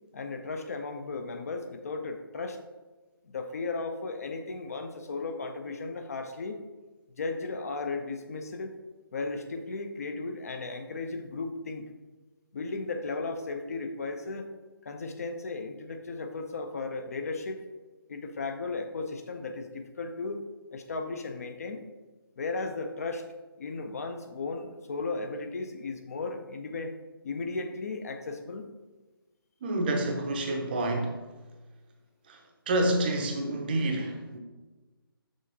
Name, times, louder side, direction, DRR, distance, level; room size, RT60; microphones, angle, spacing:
voice 1, 0.1-2.6 3.3-6.6 7.2-8.7 9.1-11.9 12.5-14.5 14.8-17.6 18.1-20.4 20.7-21.8 22.4-23.2 23.6-27.0 27.2-28.7, left 3 dB, 40° left, 6 dB, 0.5 m, -35 dB
voice 2, 29.6-31.2 32.3-34.4, right 1 dB, 25° right, 3 dB, 0.6 m, -28 dB
6.2 x 6.2 x 2.8 m, 1.2 s
figure-of-eight pair, 150°, 13 cm